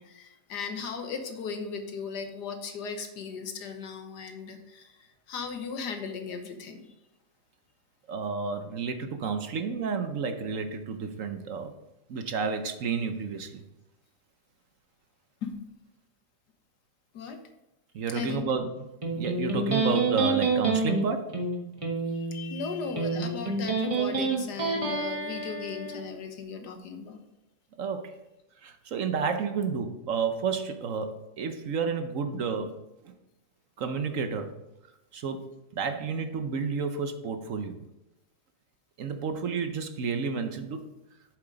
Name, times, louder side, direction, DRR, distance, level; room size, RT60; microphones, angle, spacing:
voice 1, 0.0-6.9 15.4-15.8 17.1-17.4 18.1-18.4 22.0-27.2, left 5 dB, 90° left, 6 dB, 1.7 m, -37 dB
voice 2, 8.1-11.7 12.1-13.6 17.9-18.7 19.1-21.4 27.8-28.1 28.6-32.8 33.0-33.1 33.8-34.5 35.1-35.4 35.7-37.8 39.0-40.8, right 5 dB, 60° right, 7 dB, 1.1 m, -31 dB
Electric guitar, 19.0-26.0, right 3 dB, 20° right, 1.2 m, -28 dB
7.8 x 7.3 x 3.9 m, 0.94 s
omnidirectional pair, 1.7 m